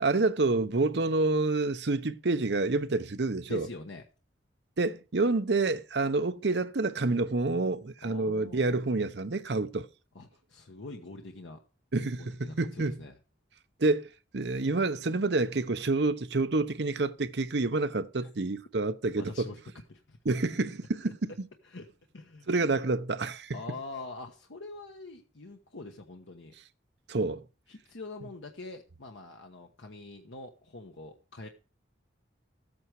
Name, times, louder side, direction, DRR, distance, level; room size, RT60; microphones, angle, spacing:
voice 1, 0.0-3.7 4.8-9.9 11.9-13.0 13.8-19.5 20.2-21.3 22.5-23.6 27.1-27.4, right 3 dB, 65° right, 0.8 m, -28 dB
voice 2, 3.5-4.0 8.0-8.8 10.1-11.6 12.0-13.2 18.2-18.3 19.2-19.6 19.9-20.2 21.6-21.9 22.1-22.5 23.5-26.5 27.7-31.5, left 3 dB, 90° left, 1.1 m, -44 dB
13.5 x 8.6 x 4.7 m
head